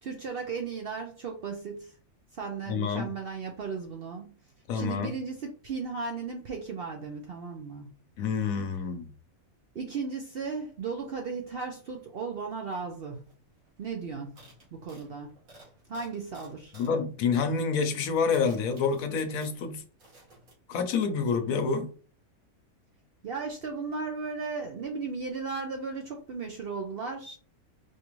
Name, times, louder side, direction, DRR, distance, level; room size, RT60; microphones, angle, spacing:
voice 1, 0.0-1.9 2.3-4.4 4.7-7.9 9.7-13.2 13.8-14.4 14.7-15.3 15.9-16.7 23.2-27.4, right 5 dB, 60° right, 0.6 m, -36 dB
voice 2, 2.7-3.1 4.7-5.1 8.2-9.1 16.7-19.8 20.7-21.9, left 5 dB, 75° left, 1.1 m, -28 dB
sound 1, 13.3-13.4 13.6-13.8 14.4-17.0 17.3-17.5 18.0-19.7 20.0-20.5, right 2 dB, 85° right, 2.1 m, -55 dB
4.5 x 2.5 x 3.0 m
omnidirectional pair, 1.5 m